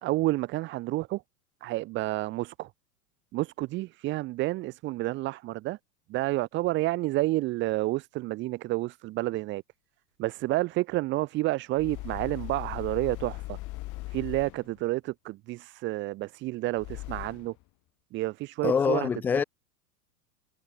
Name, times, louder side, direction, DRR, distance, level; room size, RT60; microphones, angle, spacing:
voice 1, 0.0-1.2 1.6-2.7 3.3-5.8 6.1-9.6 10.2-13.6 14.1-17.5 18.1-19.1, right 18 dB, 25° right, 0.7 m, -30 dB
sound 1, 11.8-14.8 16.8-17.6, left 20 dB, 35° left, 3.5 m, -39 dB
voice 2, 18.6-19.4, left 6 dB, 5° left, 0.3 m, -25 dB
figure-of-eight pair, 100°, 48 cm